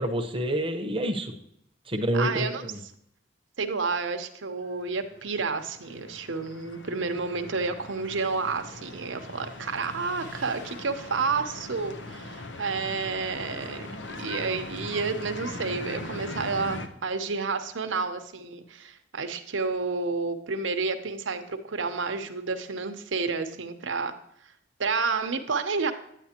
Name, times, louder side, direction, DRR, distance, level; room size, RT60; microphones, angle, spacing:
voice 1, 0.0-1.3 1.9-2.8, right 1 dB, 30° right, 3 dB, 1.0 m, -28 dB
voice 2, 2.1-2.6 3.6-24.1 24.8-25.9, right 4 dB, 90° right, 7 dB, 0.9 m, -30 dB
sound 1, 4.8-16.9, left 2 dB, 70° left, 0.8 m, -40 dB
Motorcycle, 6.9-18.0, left 2 dB, 50° left, 3.6 m, -53 dB
9.6 x 9.2 x 2.9 m, 0.74 s
head